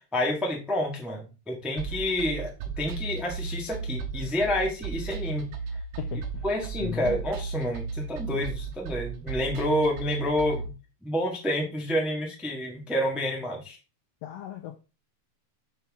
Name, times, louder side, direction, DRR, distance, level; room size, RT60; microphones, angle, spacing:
voice 1, 0.1-2.5 2.8-5.5 6.4-10.7 11.0-13.8, left 1 dB, ahead, 0.6 m, -29 dB
sound 1, 1.8-10.7, right 5 dB, 75° right, 2.2 m, -35 dB
voice 2, 6.0-6.4 6.8-7.2 14.2-14.8, left 11 dB, 85° left, 1.4 m, -36 dB
5.7 x 5.6 x 3.6 m
omnidirectional pair, 3.4 m